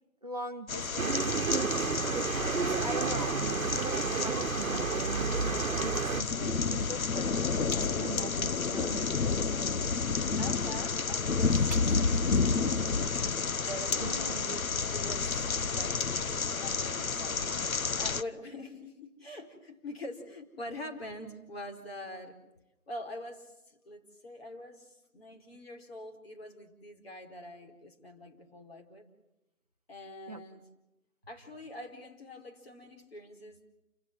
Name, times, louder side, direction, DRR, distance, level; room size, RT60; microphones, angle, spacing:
voice 1, 0.2-3.7 4.1-7.4 7.8-9.2 14.0-14.6 30.3-30.4, right 3 dB, 30° right, 4 dB, 0.8 m, -41 dB
sound 1, 0.7-18.2, left 4 dB, 75° left, 1.1 m, -31 dB
sound 2, 1.0-6.2, right 5 dB, 70° right, 1.1 m, -31 dB
sound 3, 7.6-8.1 8.6-16.5, right 5 dB, 5° right, 1.8 m, -56 dB
voice 2, 10.4-12.8 13.5-14.6 14.9-16.1 16.5-22.4 22.9-29.0 29.9-30.7 31.3-33.7, left 1 dB, 45° left, 4 dB, 4.5 m, -44 dB
29.5 x 16.5 x 7.4 m, 0.96 s
figure-of-eight pair, 165°, 42 cm